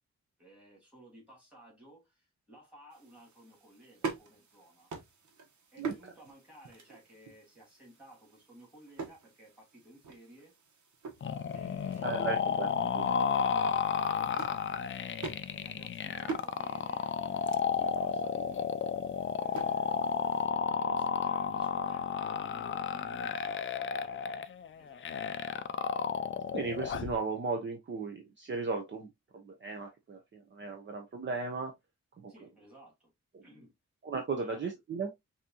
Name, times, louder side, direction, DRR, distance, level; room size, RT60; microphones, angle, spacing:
voice 1, 0.4-4.9 5.7-10.5 11.5-12.5 13.3-13.5 14.1-18.7 19.4-20.4 20.7-25.1 32.3-33.1 33.4-33.7 34.3-34.7, right 1 dB, 5° right, 3.0 m, -56 dB
sound 1, 2.9-20.5, right 4 dB, 75° right, 1.3 m, -46 dB
sound 2, 11.2-27.2, left 7 dB, 45° left, 0.4 m, -32 dB
voice 2, 12.0-12.7 12.9-13.1 26.5-31.7 32.2-32.3 33.3-33.4 34.0-35.1, right 4 dB, 40° right, 0.8 m, -36 dB
5.7 x 2.8 x 2.8 m
wide cardioid pair, 170°, 29 cm